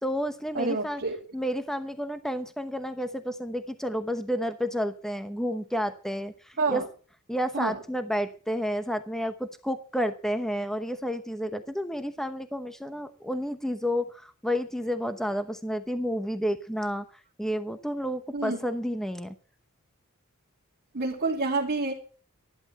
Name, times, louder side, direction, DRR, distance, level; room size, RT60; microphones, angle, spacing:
voice 1, 0.0-1.0 1.3-6.8 7.3-17.0 17.4-19.3, equal, ahead, 0.9 m, -30 dB
voice 2, 0.5-1.2 6.6-6.8 7.5-7.8 18.3-18.6 20.9-21.9, right 3 dB, 50° right, 2.5 m, -28 dB
13.5 x 11.0 x 5.8 m
head